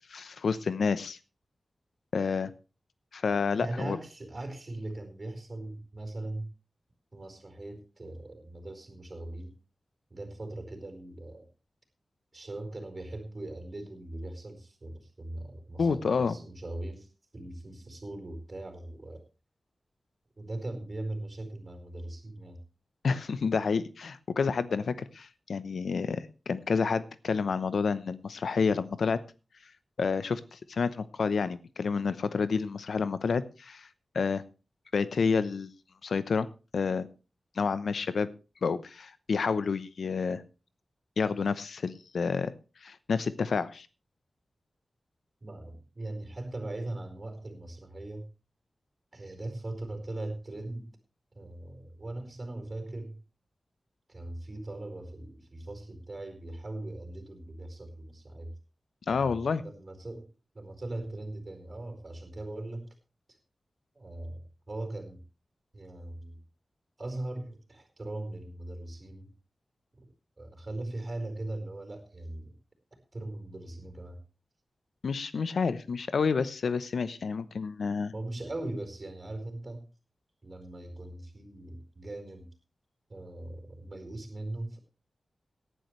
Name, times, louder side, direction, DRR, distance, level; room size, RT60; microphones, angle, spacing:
voice 1, 0.1-1.2 2.1-2.5 3.1-4.0 15.8-16.4 23.0-29.2 30.0-33.9 34.1-34.4 34.9-35.7 36.0-36.5 36.7-37.1 37.6-38.3 38.6-40.4 41.2-42.5 42.8-43.9 59.1-59.6 75.0-78.1, left 5 dB, 85° left, 15 dB, 0.8 m, -29 dB
voice 2, 3.6-6.5 7.1-9.5 10.1-11.5 12.3-19.2 20.4-22.6 45.4-48.3 49.1-50.9 51.3-53.2 54.1-58.5 59.1-62.9 63.9-65.2 65.7-66.4 67.0-69.3 70.0-72.6 73.1-74.2 78.1-79.9 80.4-82.5 83.1-84.8, right 2 dB, 35° right, 5 dB, 4.5 m, -40 dB
18.0 x 11.0 x 3.2 m, 0.31 s
wide cardioid pair, 110°, 0 cm